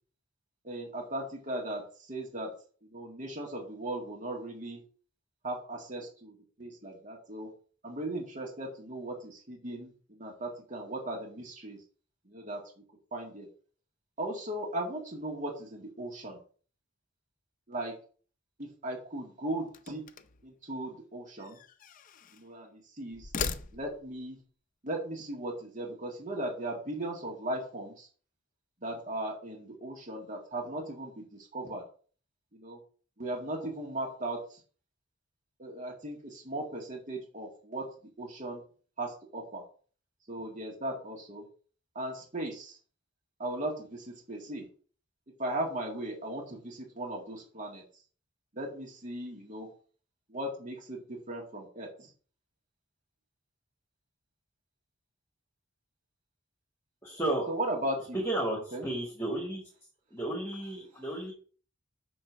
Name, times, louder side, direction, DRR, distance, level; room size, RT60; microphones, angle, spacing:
voice 1, 0.6-2.5 2.8-4.8 5.4-7.5 7.8-11.8 12.3-12.6 13.1-13.5 14.2-16.4 17.7-17.9 18.6-20.1 20.4-21.6 22.3-23.3 23.7-24.4 24.8-28.1 28.8-31.8 32.5-32.8 33.2-34.6 35.6-37.9 38.2-38.6 39.0-39.6 40.3-41.4 42.0-42.8 43.4-44.7 45.4-47.8 48.5-49.7 50.3-52.1 57.5-58.2 58.7-58.8, right 1 dB, 40° right, 0 dB, 1.9 m, -37 dB
sound 1, 19.7-20.5 21.4-22.5 23.1-24.2, left 5 dB, 45° left, 0.5 m, -39 dB
voice 2, 57.0-57.4 58.1-59.6 60.1-61.3, right 1 dB, 15° left, -3 dB, 2.0 m, -33 dB
6.3 x 4.4 x 6.2 m, 0.42 s
head